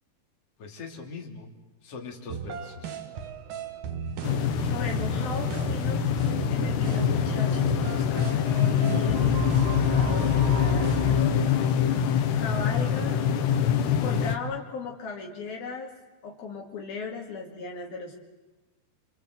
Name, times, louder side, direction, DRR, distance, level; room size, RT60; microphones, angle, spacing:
voice 1, 0.6-1.5 1.8-3.0, left 4 dB, 40° left, 1 dB, 3.8 m, -41 dB
sound 1, 2.3-11.2, right 5 dB, 60° right, 3.0 m, -34 dB
sound 2, 4.2-14.4, left 8 dB, 90° left, 3.7 m, -24 dB
voice 2, 4.6-6.0 6.5-11.6 12.0-12.1 12.4-13.2 14.0-15.9 16.2-18.2, left 4 dB, 65° left, 1 dB, 4.0 m, -37 dB
28.5 x 25.0 x 7.9 m, 1.1 s
omnidirectional pair, 4.7 m